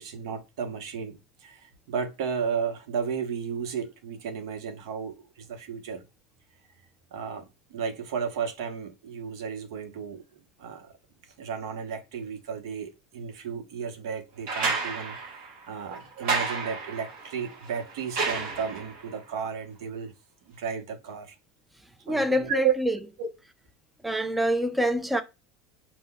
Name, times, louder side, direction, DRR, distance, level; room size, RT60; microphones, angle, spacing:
voice 1, 0.0-6.0 7.1-10.2 10.6-10.9 11.4-20.1 20.5-21.3 22.1-22.7 23.2-23.3, right 7 dB, 80° right, 0.8 m, -33 dB
sound 1, 14.5-19.1 20.6-20.7, right 4 dB, 55° right, 1.3 m, -31 dB
voice 2, 22.1-23.0 24.0-25.2, equal, 5° right, 0.3 m, -25 dB
5.5 x 2.1 x 2.2 m
supercardioid pair, 145°, 2 cm